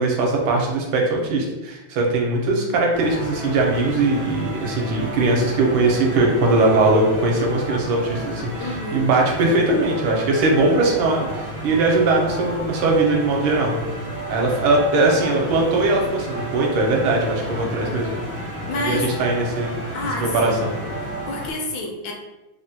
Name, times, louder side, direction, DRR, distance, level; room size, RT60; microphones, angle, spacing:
voice 1, 0.0-13.7 14.3-18.1 18.7-19.8 20.1-20.7, right 2 dB, 80° right, -1 dB, 1.4 m, -20 dB
sound 1, 2.9-21.5, right 1 dB, 15° right, 0.4 m, -32 dB
voice 2, 8.6-9.1 18.7-19.1 19.9-20.6 21.0-22.1, left 2 dB, 75° left, 1 dB, 1.1 m, -29 dB
3.5 x 2.1 x 2.7 m, 1.1 s
omnidirectional pair, 2.2 m